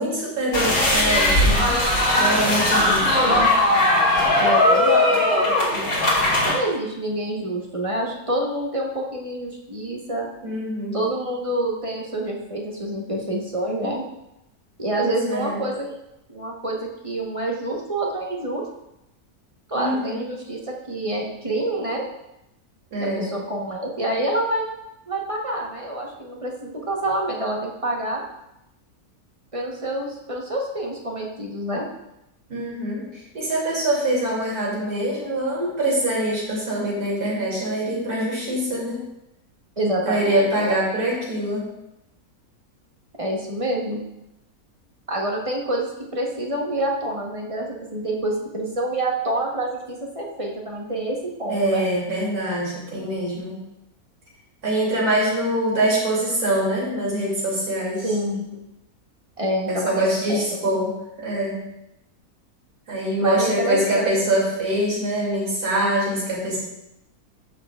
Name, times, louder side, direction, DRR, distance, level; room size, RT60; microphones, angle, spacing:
voice 1, 0.0-1.8 2.2-3.4 10.4-11.0 15.0-15.6 19.7-20.2 22.9-23.3 32.5-39.0 40.1-41.7 51.5-53.6 54.6-58.1 59.7-61.6 62.9-66.6, right 1 dB, 85° right, -5 dB, 3.4 m, -24 dB
sound 1, 0.5-6.5, left 1 dB, 70° left, 2.8 m, -19 dB
voice 2, 2.8-3.5 4.4-5.9 6.5-10.3 10.9-14.1 14.8-15.9 16.3-18.6 19.7-22.1 23.0-24.7 25.1-28.2 29.5-31.9 39.8-40.8 43.2-44.0 45.1-51.8 58.0-58.5 59.4-60.6 63.2-64.1, right 1 dB, 25° right, -1 dB, 1.1 m, -27 dB
13.5 x 6.7 x 2.4 m, 0.87 s
omnidirectional pair, 1.6 m